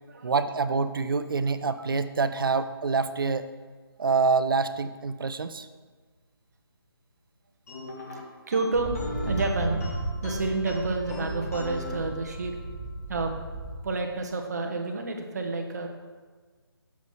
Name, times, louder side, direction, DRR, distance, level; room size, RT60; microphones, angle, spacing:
voice 1, 0.2-3.5 4.0-5.7, right 4 dB, 60° right, 12 dB, 0.5 m, -26 dB
sound 1, 7.7-12.7, left 2 dB, 35° left, 1.3 m, -40 dB
voice 2, 8.5-8.9 9.2-9.8 10.2-12.6 13.1-13.3 13.8-15.9, right 3 dB, 45° right, 3 dB, 0.9 m, -29 dB
sound 2, 8.7-13.8, right 2 dB, 25° right, 1.2 m, -34 dB
8.2 x 7.0 x 3.1 m, 1.4 s
figure-of-eight pair, 160°, 13 cm